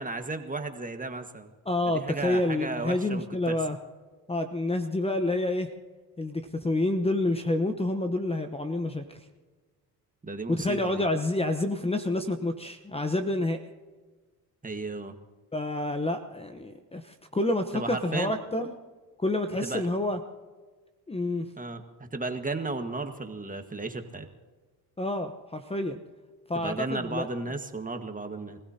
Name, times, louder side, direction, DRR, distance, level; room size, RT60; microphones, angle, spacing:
voice 1, 0.0-1.5 1.9-3.6 10.2-11.0 14.6-15.1 17.7-18.3 19.6-19.9 21.6-24.3 26.6-28.6, right 3 dB, 20° right, 6 dB, 1.6 m, -34 dB
voice 2, 1.7-3.8 4.3-5.7 6.2-9.2 10.5-13.6 15.5-18.7 19.2-20.2 21.1-21.5 25.0-26.0 26.5-27.3, left 2 dB, 15° left, 7 dB, 1.0 m, -28 dB
25.5 x 16.0 x 2.9 m, 1.3 s
supercardioid pair, 70°, 41 cm